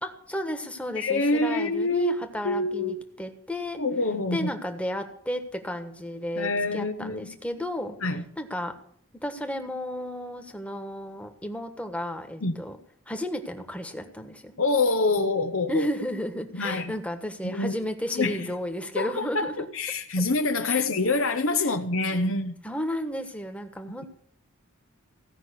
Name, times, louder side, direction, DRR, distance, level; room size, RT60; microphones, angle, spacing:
voice 1, 0.0-3.8 4.3-8.0 8.4-8.7 9.2-12.8 13.1-14.5 15.7-19.7 20.7-20.8 22.6-24.0, left 1 dB, 5° left, 1.4 m, -33 dB
voice 2, 0.9-2.2 2.4-3.0 3.8-4.5 6.4-7.4 8.0-8.2 12.4-12.6 14.6-15.9 16.5-16.9 17.4-17.8 18.1-18.5 18.9-22.6, left 3 dB, 75° left, 1.0 m, -26 dB
16.5 x 5.8 x 9.8 m
head